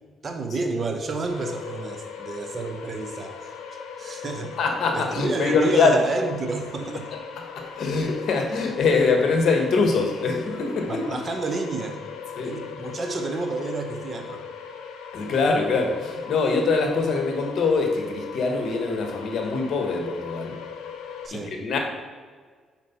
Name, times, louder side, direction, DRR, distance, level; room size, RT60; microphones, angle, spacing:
voice 1, 0.2-3.6 4.0-4.5 4.9-7.1 10.9-12.0 12.4-14.4 21.2-21.5, right 3 dB, 40° right, 4 dB, 0.9 m, -30 dB
sound 1, 1.3-21.3, left 7 dB, 90° left, 0.7 m, -39 dB
voice 2, 4.6-6.0 7.6-11.0 12.4-12.6 15.1-20.6 21.3-21.8, left 4 dB, 65° left, 3 dB, 1.2 m, -23 dB
5.2 x 4.4 x 5.5 m, 1.5 s
cardioid pair, 90°, 0 cm